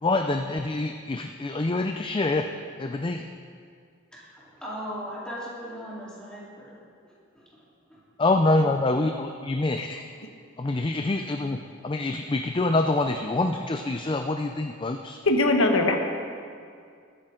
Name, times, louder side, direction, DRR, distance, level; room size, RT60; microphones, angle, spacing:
voice 1, 0.0-2.5 2.7-3.3 8.2-10.0 10.6-15.2, left 2 dB, 25° left, 5 dB, 0.4 m, -26 dB
voice 2, 4.1-6.7 7.0-7.6 7.9-8.0, equal, 5° left, -8 dB, 3.5 m, -39 dB
voice 3, 15.3-16.0, left 2 dB, 85° left, 3 dB, 1.2 m, -21 dB
21.0 x 9.2 x 3.8 m, 2.2 s
head